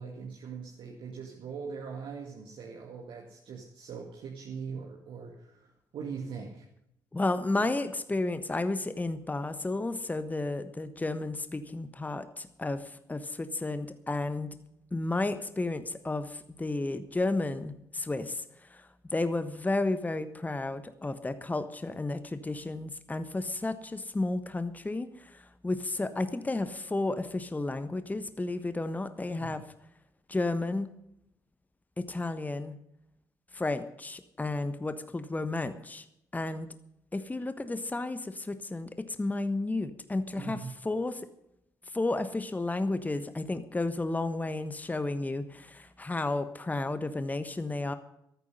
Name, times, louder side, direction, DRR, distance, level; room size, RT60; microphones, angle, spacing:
voice 1, 0.0-6.6 29.4-29.6 40.4-40.7, right 5 dB, 55° right, 0 dB, 2.2 m, -41 dB
voice 2, 7.1-14.5 14.9-18.4 18.7-18.9 19.1-29.6 30.3-30.9 32.0-32.7 33.5-36.0 36.3-36.7 37.1-41.2 41.9-47.9, left 2 dB, 15° left, 11 dB, 1.2 m, -32 dB
14.5 x 13.5 x 5.5 m, 0.78 s
figure-of-eight pair, 45°, 11 cm